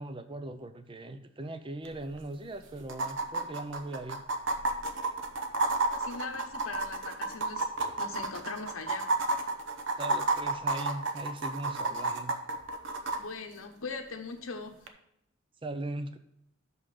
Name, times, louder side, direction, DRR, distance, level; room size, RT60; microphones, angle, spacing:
voice 1, 0.0-4.2 10.0-12.4 15.6-16.2, right 2 dB, 25° right, 9 dB, 0.5 m, -39 dB
sound 1, 1.8-1.9 2.2-2.3 2.9-13.2 14.9-15.0, right 3 dB, 60° right, 0.8 m, -31 dB
voice 2, 5.9-7.7 8.0-9.1 13.1-14.8, left 4 dB, 75° left, 5 dB, 0.9 m, -40 dB
6.2 x 5.5 x 6.5 m, 0.77 s
head